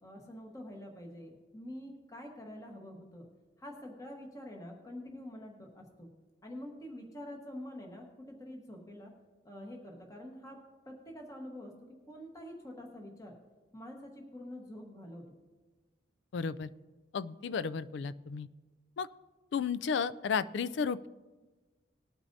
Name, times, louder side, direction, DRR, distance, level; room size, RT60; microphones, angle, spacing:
voice 1, 0.0-3.3 3.6-6.1 6.4-9.1 9.4-10.6 10.8-13.4 13.7-15.3, left 1 dB, 20° left, 1 dB, 1.3 m, -46 dB
voice 2, 16.3-16.7 17.1-18.5 19.0-19.1 19.5-21.1, left 6 dB, 70° left, 16 dB, 0.4 m, -33 dB
20.0 x 9.0 x 2.7 m, 1.3 s
head